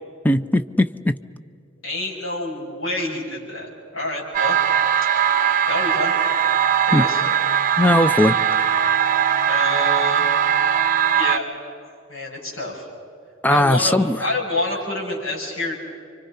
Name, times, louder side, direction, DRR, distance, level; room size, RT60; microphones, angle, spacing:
voice 1, 0.2-1.1 6.9-7.0 7.8-8.7 13.4-14.2, left 1 dB, 10° left, 12 dB, 0.5 m, -18 dB
voice 2, 1.8-4.6 5.7-6.1 6.9-7.2 9.5-10.3 11.1-12.9 13.5-15.8, left 2 dB, 80° left, -4 dB, 7.6 m, -28 dB
sound 1, 4.3-11.4, right 8 dB, 45° right, 0.8 m, -20 dB
29.0 x 25.0 x 5.8 m, 2.3 s
head